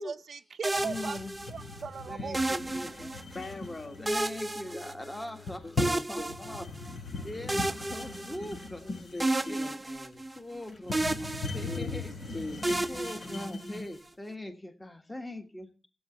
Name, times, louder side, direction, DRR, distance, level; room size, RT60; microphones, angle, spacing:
voice 1, 0.0-1.2 1.5-2.4, right 5 dB, 60° right, 0.6 m, -38 dB
sound 1, 0.6-1.8 2.3-3.5 4.1-5.4 5.8-7.0 7.5-8.8 9.2-10.6 10.9-12.1 12.6-14.0, right 2 dB, 15° right, 0.6 m, -32 dB
sound 2, 0.7-14.1, left 3 dB, 75° left, 6.2 m, -39 dB
voice 2, 0.8-1.3 2.1-3.1 4.0-6.7 7.2-9.2 9.4-9.6 10.3-12.1 12.9-15.7, left 1 dB, 15° left, 1.6 m, -41 dB
Bowed string instrument, 2.9-7.4, left 8 dB, 60° left, 2.9 m, -56 dB
voice 3, 2.9-4.0 4.7-4.8 5.6-6.6 8.4-10.3 11.6-12.0 12.3-12.9, left 2 dB, 40° left, 3.5 m, -42 dB
16.0 x 8.0 x 7.2 m
wide cardioid pair, 130°, 0 cm